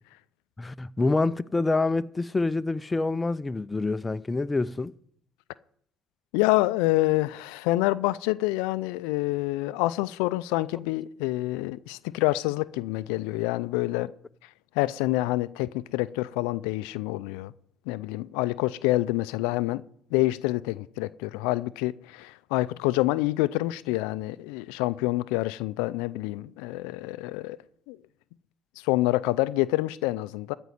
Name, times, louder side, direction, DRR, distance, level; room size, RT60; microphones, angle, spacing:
voice 1, 0.6-4.9, left 3 dB, 20° left, 0.6 m, -26 dB
voice 2, 6.3-14.1 14.8-17.5 17.9-19.8 20.1-27.6 27.9-28.0 28.8-30.5, left 18 dB, 85° left, 0.4 m, -27 dB
14.5 x 5.3 x 9.3 m
supercardioid pair, 70°, 0 cm